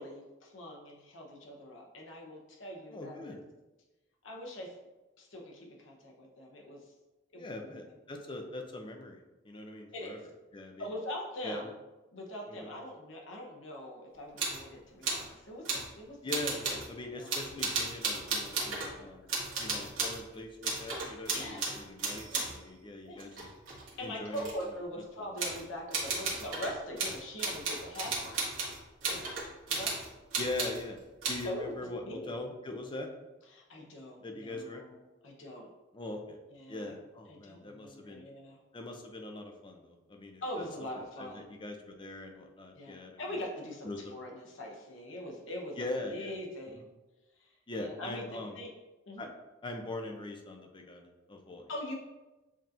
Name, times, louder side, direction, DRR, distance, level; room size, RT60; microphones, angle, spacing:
voice 1, 0.0-3.4 4.2-4.7 5.2-6.9 7.3-7.8 8.2-8.4 9.9-10.2 10.8-11.7 12.1-16.2 16.5-16.6 17.1-17.3 18.9-19.1 19.7-19.9 21.3-21.7 22.3-22.4 22.7-22.8 23.0-23.3 24.0-28.4 29.1-29.4 29.7-30.1 31.4-31.7 32.0-32.4 33.5-35.7 36.5-37.0 37.3-38.6 40.4-41.5 42.7-46.9 47.4-48.7 49.1-49.3 51.7-51.9, left 1 dB, 75° left, -1 dB, 0.9 m, -42 dB
voice 2, 2.9-3.4 7.4-9.2 9.4-10.2 10.5-10.9 11.4-11.7 12.5-12.7 16.2-19.3 19.6-23.5 24.0-24.5 30.4-31.0 31.3-33.1 34.2-34.8 35.9-36.4 36.7-38.2 38.7-40.6 40.9-43.1 43.8-44.0 45.8-46.3 46.7-46.8 47.7-48.6 49.2-49.3 49.6-51.6, left 2 dB, 25° left, 3 dB, 0.5 m, -41 dB
sound 1, 14.4-14.7 15.0-15.3 15.6-15.9 16.3-16.9 17.3-18.9 19.3-20.2 20.6-22.6 23.2-24.6 25.4-25.6 25.9-30.8 31.2-31.5, right 3 dB, 70° right, 1.3 m, -34 dB
7.2 x 2.9 x 2.5 m, 1.1 s
head